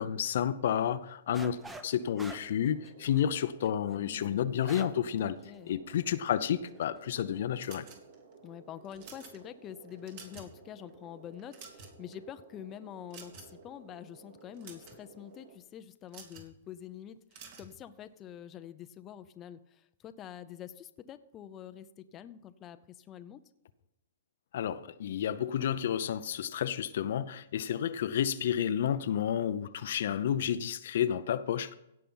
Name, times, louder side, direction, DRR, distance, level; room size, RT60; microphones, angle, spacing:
voice 1, 0.0-1.6 1.8-5.4 5.7-7.9 24.5-31.7, left 9 dB, 65° left, 0.7 m, -31 dB
sound 1, 1.3-1.9 2.2-5.1 5.4-5.5 6.1-6.4, right 2 dB, 10° right, 0.9 m, -46 dB
sound 2, 1.9-15.6, right 3 dB, 75° right, 2.2 m, -55 dB
voice 2, 4.0-4.5 5.2-5.7 8.4-23.4, left 10 dB, 25° left, 0.6 m, -46 dB
sound 3, 7.6-8.3 8.8-9.4 9.9-10.6 10.9-11.0 11.4-12.1 13.1-13.6 14.4-15.0 16.1-16.5 17.3-17.7, right 5 dB, 50° right, 2.9 m, -50 dB
17.0 x 5.7 x 5.6 m
hypercardioid pair, 140°, 0 cm